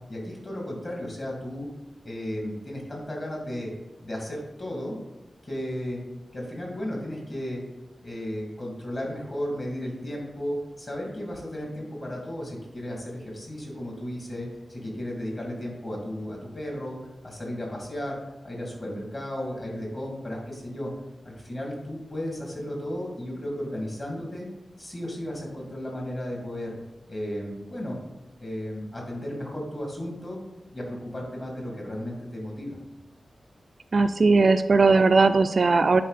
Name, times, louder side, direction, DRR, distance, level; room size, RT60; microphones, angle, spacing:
voice 1, 0.1-1.7 2.0-3.7 4.0-5.0 5.4-6.0 6.3-7.6 8.0-16.9 17.2-18.2 18.4-20.9 21.2-24.5 24.8-26.8 27.1-28.0 28.4-30.4 30.7-32.8, left 1 dB, 35° left, -1 dB, 2.4 m, -34 dB
voice 2, 33.9-36.0, right 3 dB, 45° right, 9 dB, 0.3 m, -19 dB
10.0 x 4.1 x 4.1 m, 1.0 s
wide cardioid pair, 135°, 0 cm